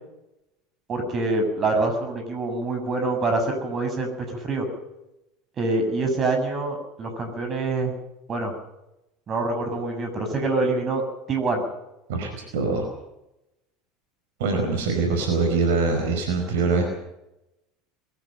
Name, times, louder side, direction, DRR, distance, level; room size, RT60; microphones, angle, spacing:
voice 1, 0.9-4.7 5.6-7.9 8.3-8.5 9.3-11.0 11.3-11.6, right 3 dB, 35° right, 4 dB, 7.3 m, -25 dB
voice 2, 12.1-12.8 14.4-16.8, right 4 dB, 65° right, 4 dB, 4.7 m, -23 dB
22.5 x 14.5 x 9.0 m, 0.92 s
figure-of-eight pair, 75°, 0 cm